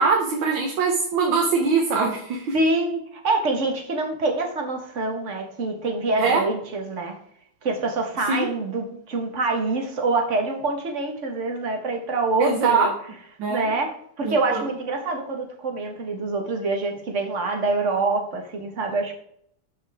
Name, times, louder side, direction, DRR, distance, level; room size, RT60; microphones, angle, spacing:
voice 1, 0.0-2.6 6.2-6.4 8.3-8.5 12.4-12.9 13.4-13.7 14.2-14.7, right 4 dB, 65° right, 1 dB, 1.9 m, -22 dB
voice 2, 2.5-7.2 7.6-12.9 13.5-13.9 14.2-19.1, right 3 dB, 35° right, 3 dB, 1.6 m, -25 dB
12.0 x 5.9 x 3.6 m, 0.67 s
omnidirectional pair, 2.4 m